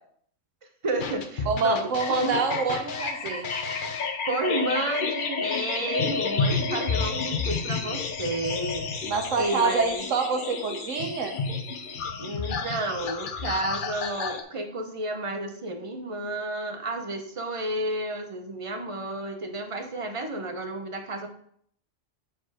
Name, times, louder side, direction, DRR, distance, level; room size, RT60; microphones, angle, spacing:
voice 1, 0.8-2.4 4.3-9.1 9.4-10.1 12.2-21.3, right 2 dB, 30° right, 6 dB, 0.7 m, -31 dB
sound 1, 1.0-14.4, left 5 dB, 50° left, 0.7 m, -30 dB
voice 2, 1.5-3.5 9.0-11.4, right 4 dB, 85° right, 4 dB, 1.3 m, -26 dB
7.1 x 4.3 x 4.9 m, 0.65 s
omnidirectional pair, 1.3 m